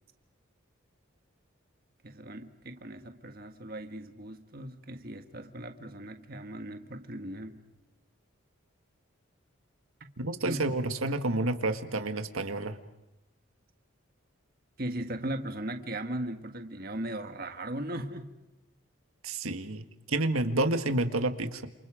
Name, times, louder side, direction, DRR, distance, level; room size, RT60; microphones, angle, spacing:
voice 1, 2.0-7.6 10.0-10.1 10.4-10.6 14.8-18.3, right 1 dB, 45° right, 6 dB, 1.7 m, -38 dB
voice 2, 10.2-12.8 19.2-21.7, right 2 dB, 90° right, 8 dB, 1.8 m, -29 dB
29.5 x 28.5 x 5.1 m, 0.97 s
head